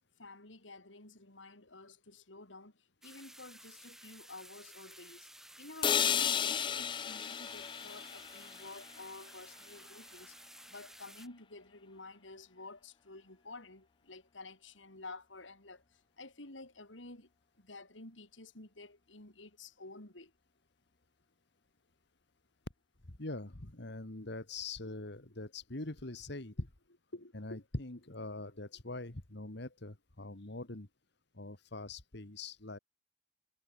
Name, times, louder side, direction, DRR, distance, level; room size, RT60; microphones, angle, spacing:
voice 1, 0.2-5.3 5.6-17.3 17.6-20.3 24.8-24.9 26.6-26.7 27.1-27.6 28.7-28.8, left 2 dB, 90° left, 4.3 m, -51 dB
sound 1, 3.0-11.3, right 1 dB, ahead, 1.5 m, -55 dB
sound 2, 5.8-9.8, left 8 dB, 25° left, 0.3 m, -34 dB
voice 2, 23.1-26.7 27.3-30.9 31.4-32.8, left 2 dB, 65° left, 2.1 m, -43 dB
head